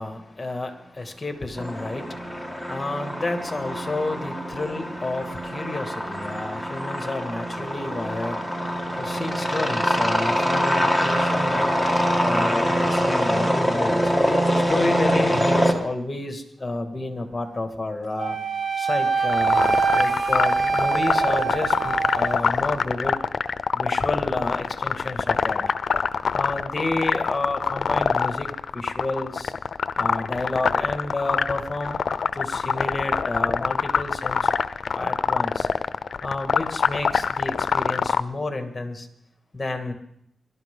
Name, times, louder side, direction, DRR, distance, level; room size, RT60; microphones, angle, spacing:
voice 1, 0.0-11.9 12.2-14.4 14.7-18.4 18.8-23.2 23.7-25.6 26.3-28.5 28.7-29.5 30.0-32.0 32.3-34.5 34.9-35.7 36.2-39.1 39.5-39.9, left 2 dB, 25° left, 5 dB, 2.2 m, -30 dB
sound 1, 1.6-15.7, equal, 5° right, 2.2 m, -24 dB
Wind instrument woodwind instrument, 18.2-22.4, right 5 dB, 35° right, 1.8 m, -24 dB
sound 2, 19.3-38.2, left 6 dB, 65° left, 0.5 m, -24 dB
22.0 x 12.5 x 3.9 m, 0.72 s
cardioid pair, 80°, 0 cm